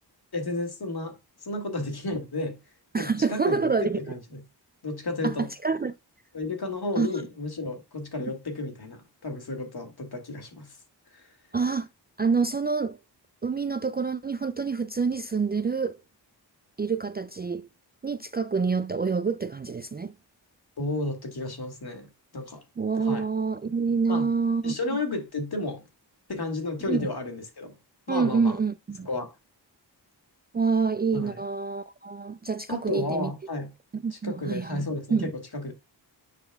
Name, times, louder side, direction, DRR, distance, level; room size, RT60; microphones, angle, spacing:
voice 1, 0.3-2.6 2.9-4.4 4.8-5.5 6.3-10.8 11.1-11.2 20.8-22.6 23.0-23.3 24.1-24.3 24.6-25.8 26.3-27.7 28.1-28.6 29.0-29.3 31.1-31.3 32.7-33.7 34.2-35.7, left 2 dB, 60° left, 2.2 m, -32 dB
voice 2, 2.9-4.0 5.2-5.9 7.0-7.1 11.5-11.9 12.2-13.0 13.4-16.0 16.8-17.7 18.0-20.1 22.8-24.7 26.9-27.1 28.1-29.1 30.5-33.3 33.9-35.3, right 5 dB, 25° right, 0.3 m, -27 dB
9.8 x 4.2 x 2.3 m
cardioid pair, 50°, 43 cm